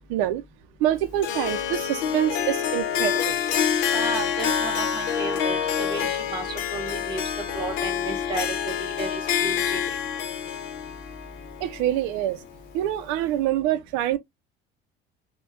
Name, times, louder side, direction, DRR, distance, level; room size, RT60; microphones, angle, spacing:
voice 1, 0.1-0.4 0.8-3.4 11.6-12.4 12.7-14.2, right 12 dB, 85° right, 0.5 m, -25 dB
Harp, 1.2-12.5, left 8 dB, 80° left, 0.7 m, -27 dB
voice 2, 3.9-7.2 7.5-10.0, right 3 dB, 20° right, 1.6 m, -33 dB
4.3 x 2.2 x 2.3 m
cardioid pair, 130°, 20 cm